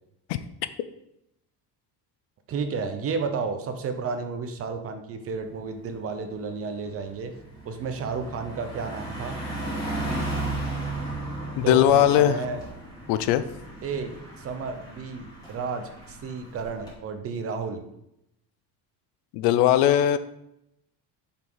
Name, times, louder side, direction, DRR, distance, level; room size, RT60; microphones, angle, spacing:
voice 1, 2.5-7.3 7.6-9.4 11.6-12.6 13.8-17.8, right 5 dB, 35° right, 7 dB, 0.8 m, -32 dB
Car passing by, 5.3-5.6 6.0-16.9, right 2 dB, 10° left, 2.6 m, -35 dB
voice 2, 11.6-12.4 13.1-13.4 19.3-20.2, left 11 dB, 85° left, 13 dB, 0.7 m, -19 dB
7.5 x 5.8 x 3.9 m, 0.81 s
cardioid pair, 165°, 39 cm